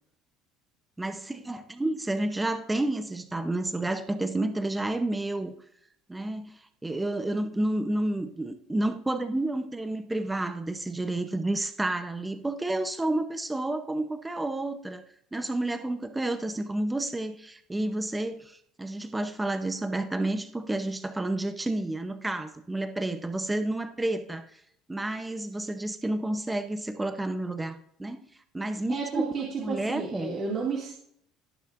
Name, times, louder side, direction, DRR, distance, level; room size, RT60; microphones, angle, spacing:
voice 1, 1.0-5.5 6.1-15.0 15.3-24.6 24.9-28.2 28.5-29.3 29.6-30.4, right 2 dB, 10° right, 8 dB, 0.8 m, -30 dB
voice 2, 28.9-30.9, right 5 dB, 40° right, -3 dB, 2.4 m, -32 dB
18.5 x 6.7 x 2.6 m, 0.68 s
cardioid pair, 135°, 0 cm